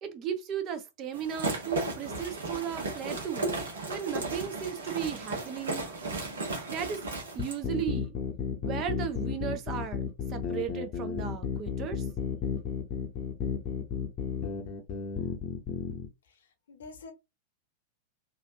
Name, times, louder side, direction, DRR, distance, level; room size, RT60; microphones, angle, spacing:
voice 1, 0.0-3.5 3.9-5.9 6.7-7.0 7.3-8.2 8.6-10.0 10.3-12.0, right 8 dB, 35° right, 0.7 m, -35 dB
sound 1, 1.1-7.6, right 2 dB, 65° right, 1.1 m, -35 dB
sound 2, 7.4-16.1, left 7 dB, 40° left, 0.8 m, -33 dB
voice 2, 16.2-17.1, left 3 dB, 65° left, 0.9 m, -48 dB
3.2 x 2.5 x 2.7 m
figure-of-eight pair, 90°, 0 cm